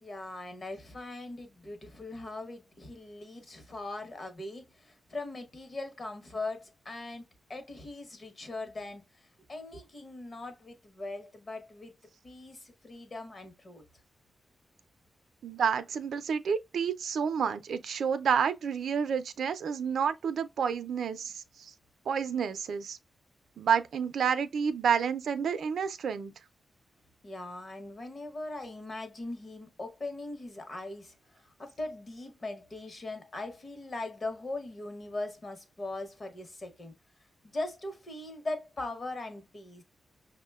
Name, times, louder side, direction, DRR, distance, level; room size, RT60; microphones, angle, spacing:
voice 1, 0.0-7.2 7.5-11.9 12.2-13.8 27.2-36.9 37.4-39.8, left 2 dB, 30° left, 0.8 m, -40 dB
voice 2, 15.4-21.7 22.1-23.0 23.6-26.3, right 7 dB, 75° right, 0.4 m, -29 dB
5.9 x 2.1 x 2.2 m
wide cardioid pair, 180°, 0 cm